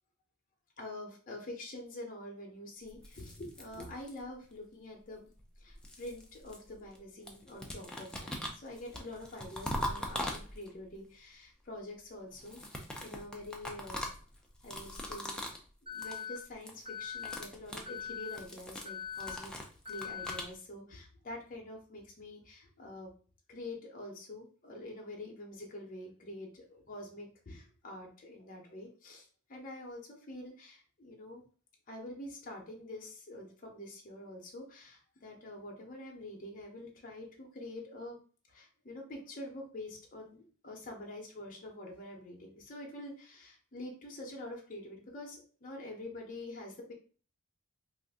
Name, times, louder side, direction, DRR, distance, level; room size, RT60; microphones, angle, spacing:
voice 1, 0.8-5.3 5.6-14.1 14.6-15.6 15.9-19.5 19.9-23.1 23.5-31.4 31.9-38.2 38.5-46.9, left 1 dB, 40° left, -1 dB, 0.7 m, -46 dB
sound 1, 2.9-4.4 5.4-7.0 7.3-10.9 12.3-15.7 15.9-16.2 16.5-16.8 17.1-20.5, left 1 dB, 5° left, 0.4 m, -41 dB
Alarm, 15.9-16.4 16.9-17.4 17.9-18.4 18.9-19.4 19.9-20.4, left 7 dB, 20° right, 1.1 m, -41 dB
2.5 x 2.5 x 3.5 m, 0.41 s
head